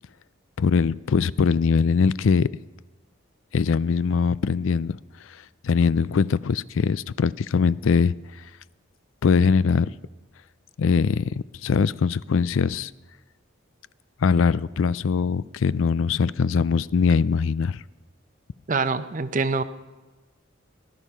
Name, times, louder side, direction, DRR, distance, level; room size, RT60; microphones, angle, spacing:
voice 1, 0.6-2.5 3.5-5.0 5.6-8.1 9.2-9.9 10.8-11.3 11.6-12.9 14.2-17.8, left 5 dB, 80° left, 0.4 m, -21 dB
voice 2, 18.7-19.6, right 4 dB, 40° right, 0.7 m, -24 dB
18.5 x 12.0 x 5.6 m
head